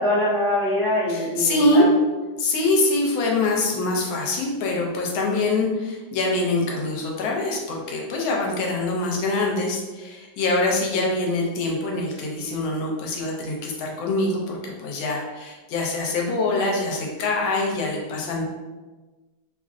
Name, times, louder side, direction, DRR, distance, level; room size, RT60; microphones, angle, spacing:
voice 1, 0.0-1.9 10.9-11.0, left 1 dB, 60° left, -10 dB, 0.7 m, -23 dB
voice 2, 1.1-1.9 2.4-18.4, left 2 dB, 90° left, -1 dB, 1.4 m, -24 dB
3.3 x 2.5 x 2.3 m, 1.2 s
omnidirectional pair, 2.1 m